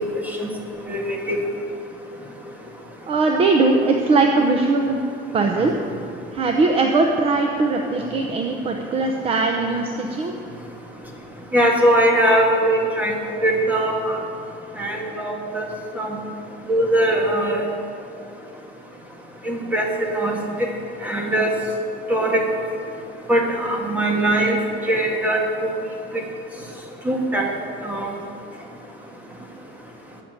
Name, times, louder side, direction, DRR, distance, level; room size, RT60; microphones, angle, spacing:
voice 1, 0.9-1.4 11.5-14.2 14.8-15.7 16.0-16.2 16.7-17.6 19.4-20.4 21.0-21.5 22.1-22.4 23.3-24.6 24.9-25.7 27.0-27.5 27.8-28.1, right 1 dB, 10° right, 0 dB, 1.7 m, -21 dB
voice 2, 3.1-5.0 5.3-5.7 6.3-10.3, right 3 dB, 30° right, 2 dB, 0.8 m, -20 dB
14.0 x 7.0 x 9.1 m, 2.5 s
cardioid pair, 170°, 20 cm